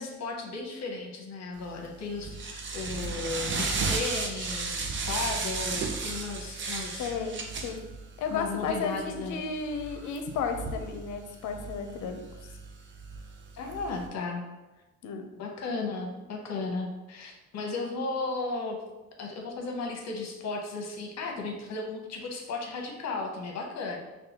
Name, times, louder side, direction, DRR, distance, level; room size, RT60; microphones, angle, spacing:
voice 1, 0.0-7.1 8.3-9.4 13.5-14.4 15.3-18.8 19.2-24.0, left 3 dB, 60° left, 1 dB, 0.9 m, -35 dB
sound 1, 1.6-14.1, right 4 dB, 40° right, 0.6 m, -35 dB
voice 2, 7.0-7.8 8.2-12.3 15.0-15.3, left 5 dB, 85° left, 5 dB, 0.5 m, -33 dB
5.3 x 2.3 x 2.8 m, 1.1 s
cardioid pair, 90°, 30 cm